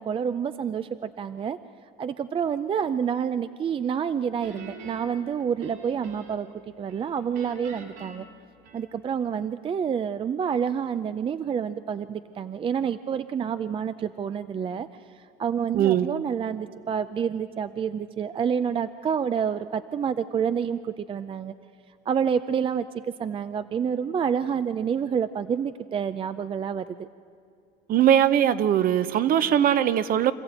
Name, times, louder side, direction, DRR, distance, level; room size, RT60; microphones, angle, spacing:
voice 1, 0.0-1.6 2.0-6.5 6.8-8.2 8.7-14.9 15.4-21.5 22.1-22.9 23.2-26.9, right 7 dB, 30° right, 0.5 m, -28 dB
Guitar, 4.4-6.6 6.9-9.2, right 3 dB, 75° right, 3.4 m, -45 dB
voice 2, 15.7-16.1 27.9-30.3, right 10 dB, 55° right, 0.9 m, -20 dB
26.0 x 14.5 x 9.0 m
cardioid pair, 130°, 18 cm